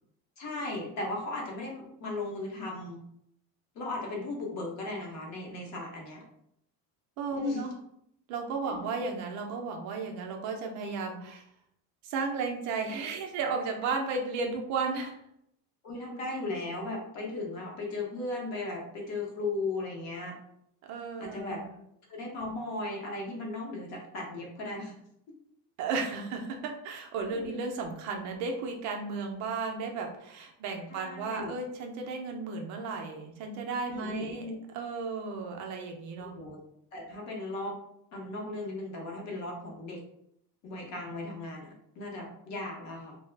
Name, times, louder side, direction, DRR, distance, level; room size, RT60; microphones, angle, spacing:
voice 1, 0.4-3.0 3.7-6.2 7.3-7.6 8.6-8.9 15.8-20.4 21.2-21.6 22.1-24.9 27.3-27.6 30.9-31.5 33.9-34.6 36.2-36.6 36.9-37.7 38.1-40.0 40.6-43.2, left 2 dB, 40° left, -1 dB, 0.7 m, -36 dB
voice 2, 7.2-7.7 8.3-11.4 12.0-15.2 20.9-21.7 25.8-34.5 34.7-36.3, right 4 dB, 45° right, 2 dB, 0.4 m, -34 dB
2.3 x 2.0 x 3.1 m, 0.75 s
cardioid pair, 175°, 43 cm